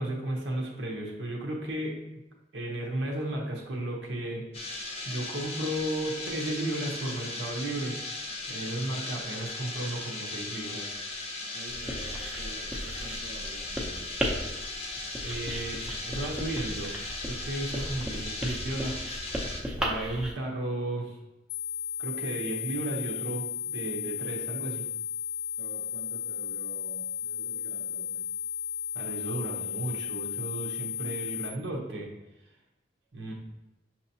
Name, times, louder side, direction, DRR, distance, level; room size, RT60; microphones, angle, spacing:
voice 1, 0.0-2.0 2.5-4.5 5.1-8.0 8.5-11.0 15.2-19.0 19.6-21.2 22.0-24.9 28.9-32.1 33.1-33.3, right 1 dB, 90° right, -1 dB, 0.9 m, -34 dB
sound 1, 4.5-19.6, left 2 dB, 35° left, 0.6 m, -37 dB
voice 2, 11.5-14.1 25.6-28.3, right 2 dB, 65° right, -2 dB, 0.7 m, -48 dB
Writing, 11.7-20.3, equal, 5° right, 0.5 m, -36 dB
sound 2, 21.5-31.5, left 9 dB, 80° left, 0.6 m, -34 dB
6.1 x 2.9 x 2.7 m, 0.98 s
head